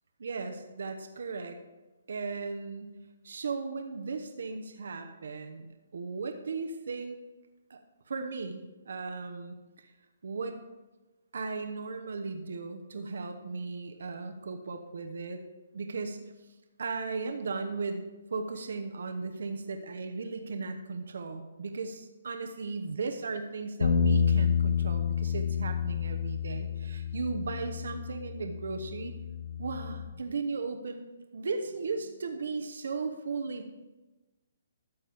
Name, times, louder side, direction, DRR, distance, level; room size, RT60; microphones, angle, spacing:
voice 1, 0.2-1.6 2.1-3.0 3.2-7.2 7.7-7.8 8.1-9.9 10.2-10.6 11.3-15.4 15.7-16.2 16.8-18.0 18.3-29.1 29.6-31.0 31.3-33.8, right 4 dB, 75° right, 6 dB, 0.9 m, -36 dB
Bass guitar, 23.8-30.1, left 7 dB, 80° left, 1.5 m, -29 dB
12.5 x 7.1 x 3.5 m, 1.1 s
hypercardioid pair, 160°, 0 cm